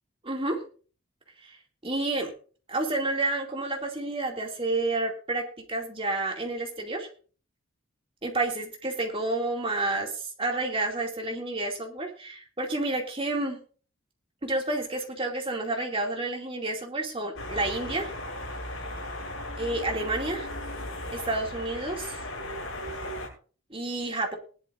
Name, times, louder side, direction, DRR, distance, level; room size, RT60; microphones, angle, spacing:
voice 1, 0.2-0.6 1.4-1.6 1.8-2.3 2.7-7.1 8.2-13.6 14.4-18.1 19.6-20.5 21.1-22.2 23.7-24.4, right 2 dB, 25° right, 2 dB, 2.5 m, -30 dB
sound 1, 17.4-23.3, left 1 dB, 75° left, 6.6 m, -36 dB
19.5 x 11.5 x 2.6 m, 0.39 s
head